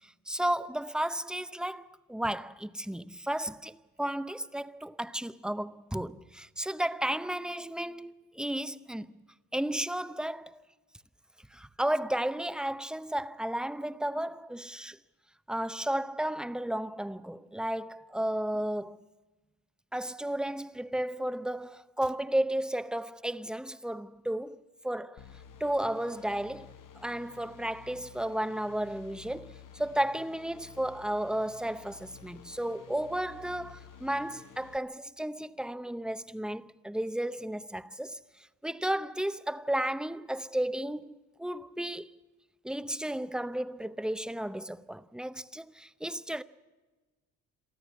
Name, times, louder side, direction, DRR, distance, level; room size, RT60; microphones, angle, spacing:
voice 1, 0.3-9.1 9.5-10.6 11.5-15.0 15.5-19.0 19.9-24.6 24.8-25.2 25.6-38.2 38.6-41.1 41.4-42.1 42.6-46.4, right 1 dB, ahead, 0.7 m, -33 dB
sound 1, 25.2-34.8, left 7 dB, 50° left, 1.2 m, -52 dB
23.5 x 13.5 x 8.5 m
supercardioid pair, 60°, 41 cm